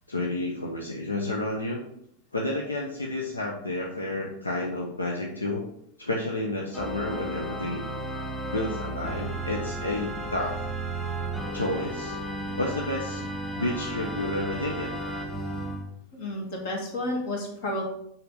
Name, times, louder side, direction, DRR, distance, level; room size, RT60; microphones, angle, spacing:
voice 1, 0.1-1.8 2.3-5.6 6.0-7.8 8.5-10.6 11.5-12.2 12.6-15.0, left 2 dB, 80° left, -1 dB, 0.9 m, -31 dB
Organ, 6.7-15.8, right 1 dB, 15° left, 2.1 m, -33 dB
voice 2, 16.1-17.8, left 1 dB, 55° left, 1 dB, 2.2 m, -31 dB
6.8 x 5.8 x 4.0 m, 0.72 s
figure-of-eight pair, 90°, 0 cm